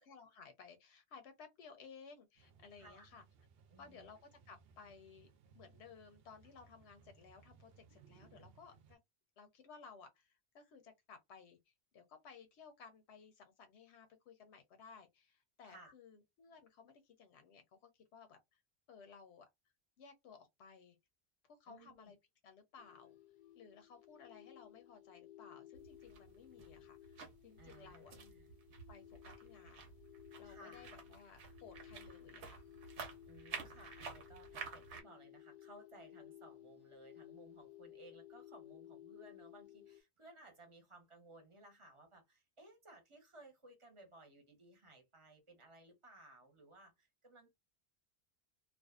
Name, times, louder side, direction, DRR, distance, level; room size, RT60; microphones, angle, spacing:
voice 1, 0.0-3.2 3.8-5.3 5.5-9.0 9.4-18.6 18.9-19.5 20.0-21.0 21.4-22.2 22.4-23.2 23.6-28.1 28.9-29.9 30.4-32.6, left 5 dB, 90° left, 0.9 m, -58 dB
sound 1, 2.4-9.0, right 6 dB, 70° right, 0.7 m, -65 dB
voice 2, 2.8-3.1 3.7-4.1 15.6-15.9 21.7-22.1 27.6-28.5 30.4-30.9 33.3-47.6, right 2 dB, 30° right, 0.8 m, -60 dB
sound 2, 22.8-40.0, left 12 dB, 60° left, 0.6 m, -58 dB
sound 3, 25.7-35.0, right 5 dB, 90° right, 1.0 m, -51 dB
2.5 x 2.3 x 2.3 m
omnidirectional pair, 1.1 m